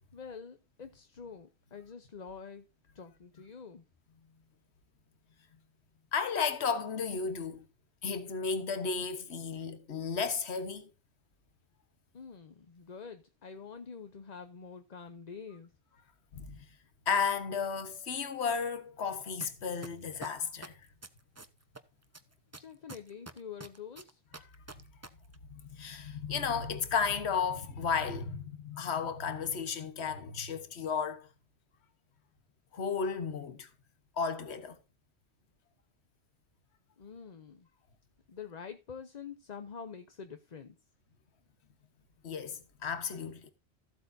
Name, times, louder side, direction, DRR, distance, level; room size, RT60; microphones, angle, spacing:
voice 1, 0.1-2.6 2.9-3.8 12.1-15.7 22.6-24.2 37.0-37.7 38.3-40.8, left 6 dB, 40° left, 0.8 m, -46 dB
voice 2, 6.1-7.6 8.0-10.9 16.3-16.6 17.1-20.7 25.5-31.3 32.7-33.7 34.2-34.8 42.2-43.5, left 6 dB, 70° left, 1.4 m, -33 dB
sound 1, 19.4-19.5 19.8-21.8 22.1-25.1 25.3-25.4, right 2 dB, 15° right, 0.7 m, -45 dB
14.5 x 8.2 x 2.6 m
omnidirectional pair, 1.2 m